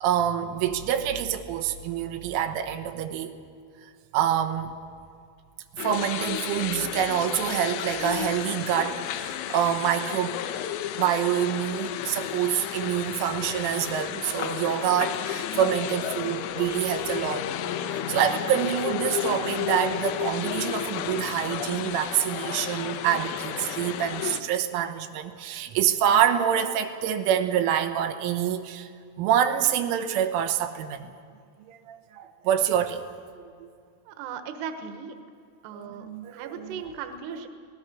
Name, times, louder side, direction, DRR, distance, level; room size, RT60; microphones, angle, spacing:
voice 1, 0.0-3.3 4.1-4.7 5.8-10.4 11.0-17.5 17.9-28.9 29.2-31.1 31.7-33.0 35.8-36.8, right 9 dB, 90° right, 6 dB, 3.5 m, -26 dB
sound 1, 5.8-24.4, left 10 dB, 75° left, 2.8 m, -32 dB
voice 2, 34.1-35.2 35.6-37.5, right 6 dB, 70° right, 7 dB, 3.0 m, -37 dB
26.5 x 18.5 x 6.2 m, 2.2 s
omnidirectional pair, 5.5 m